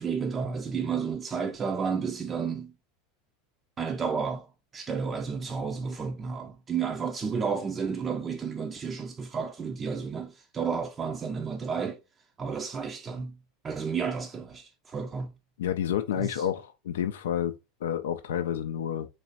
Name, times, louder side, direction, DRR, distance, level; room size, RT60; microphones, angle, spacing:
voice 1, 0.0-2.7 3.8-4.5 4.7-12.0 12.4-13.4 13.6-15.3 16.2-16.5, right 6 dB, 30° right, 0.5 m, -32 dB
voice 2, 15.6-17.5 17.8-19.1, left 9 dB, 80° left, 0.4 m, -29 dB
3.3 x 3.1 x 4.0 m
hypercardioid pair, 95°, 0 cm